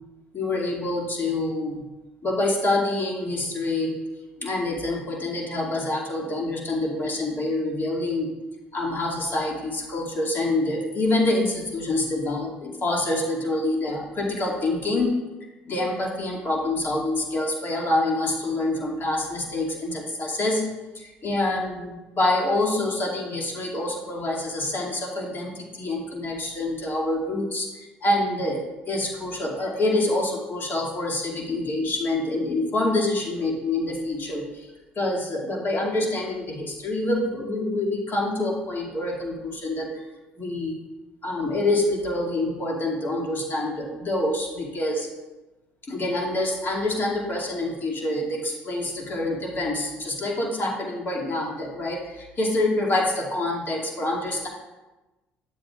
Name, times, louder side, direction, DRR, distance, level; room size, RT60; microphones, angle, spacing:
voice 1, 0.3-1.8 2.2-4.0 4.4-8.4 8.7-15.2 15.6-20.7 20.9-27.7 28.0-34.7 35.0-40.0 40.4-40.7 41.2-45.1 45.9-54.5, left 2 dB, 45° left, -2 dB, 2.3 m, -26 dB
11.5 x 7.6 x 2.4 m, 1.1 s
hypercardioid pair, 55°, 5 cm